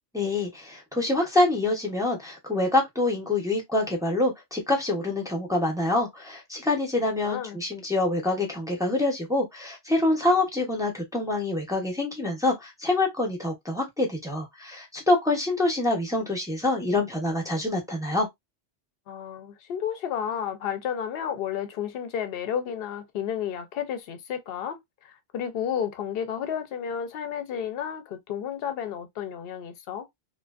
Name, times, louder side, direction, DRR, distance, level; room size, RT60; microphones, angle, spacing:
voice 1, 0.1-18.3, left 2 dB, 5° right, 0.5 m, -26 dB
voice 2, 7.2-7.6 19.1-24.8 25.0-30.1, left 8 dB, 60° left, 0.7 m, -32 dB
2.4 x 2.2 x 2.3 m
omnidirectional pair, 1.2 m